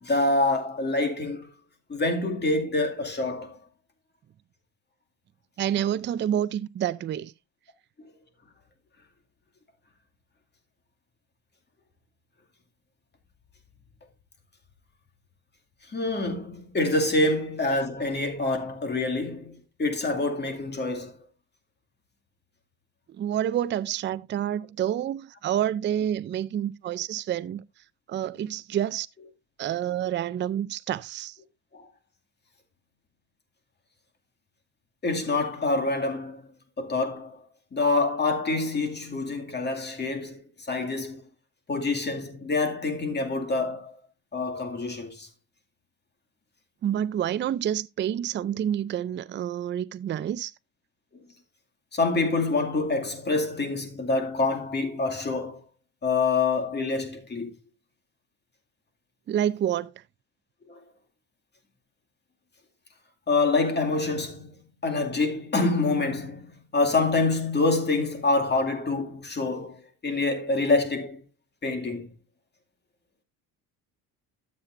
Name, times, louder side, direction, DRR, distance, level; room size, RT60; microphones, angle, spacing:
voice 1, 0.0-1.5 1.9-3.6 15.9-21.1 31.7-31.9 35.0-36.4 36.8-37.4 37.7-41.2 41.7-43.9 44.3-45.3 51.9-55.6 56.0-57.5 60.7-60.8 63.3-64.6 64.8-66.5 66.7-71.2 71.6-72.1, left 3 dB, 25° left, 2.4 m, -26 dB
voice 2, 5.6-7.3 23.1-27.6 28.1-29.1 29.6-31.4 46.8-50.5 59.3-59.9, right 10 dB, 30° right, 0.4 m, -28 dB
13.0 x 7.5 x 2.6 m
supercardioid pair, 95°, 37 cm